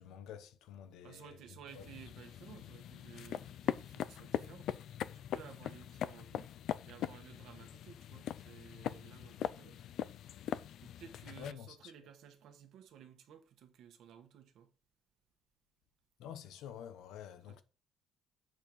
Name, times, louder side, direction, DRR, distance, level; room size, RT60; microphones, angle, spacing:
voice 1, 0.0-1.4 1.7-1.9 11.4-11.7 16.2-17.6, left 9 dB, 90° left, 1.0 m, -48 dB
voice 2, 1.0-4.7 5.1-6.6 6.8-9.8 10.8-14.7 17.5-17.6, right 9 dB, 70° right, 1.5 m, -56 dB
sound 1, 1.7-11.5, left 10 dB, 65° left, 0.5 m, -41 dB
7.8 x 4.6 x 5.2 m
cardioid pair, 155°, 0 cm